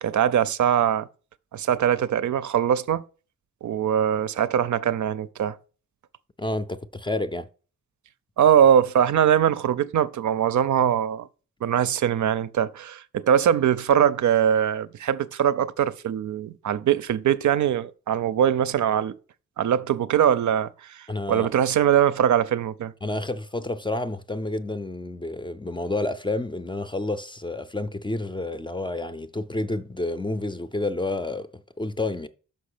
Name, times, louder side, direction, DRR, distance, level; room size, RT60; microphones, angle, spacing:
voice 1, 0.0-1.1 1.5-3.0 3.6-5.6 8.4-11.3 11.6-19.2 19.6-22.9, right 9 dB, 75° right, 0.5 m, -22 dB
voice 2, 6.4-7.5 21.1-21.5 23.0-31.5 31.8-32.3, left 2 dB, 15° left, 0.4 m, -29 dB
6.0 x 5.1 x 6.5 m
wide cardioid pair, 155°, 30 cm